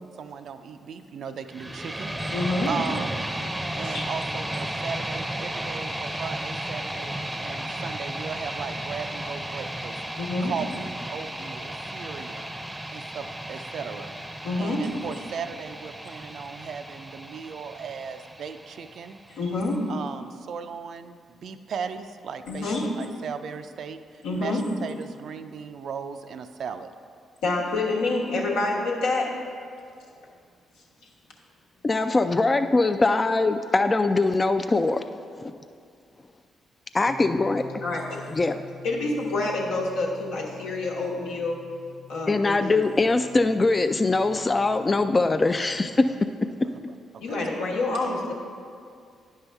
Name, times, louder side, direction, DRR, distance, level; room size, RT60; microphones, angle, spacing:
voice 1, 0.2-2.4 2.7-3.3 3.7-10.0 10.4-12.5 12.9-14.1 14.6-19.2 19.9-26.9 46.7-46.8 47.1-47.5, right 6 dB, 65° right, 9 dB, 0.4 m, -37 dB
sound 1, 1.5-19.5, right 1 dB, 15° right, 0.6 m, -34 dB
voice 2, 2.2-2.7 3.8-4.0 10.2-10.5 14.4-14.9 19.3-19.8 22.5-22.8 24.2-24.6 27.4-29.4 37.8-38.2 38.8-41.6 42.1-42.8 47.2-48.3, left 2 dB, 80° left, -3 dB, 1.2 m, -27 dB
voice 3, 31.8-35.0 35.5-35.6 36.9-37.6 38.3-38.6 42.3-46.1 46.6-46.7, left 3 dB, 30° left, 8 dB, 0.3 m, -22 dB
sound 2, 37.1-46.2, left 4 dB, 15° left, 0.9 m, -47 dB
10.0 x 5.5 x 3.4 m, 2.3 s
hypercardioid pair, 45°, 0 cm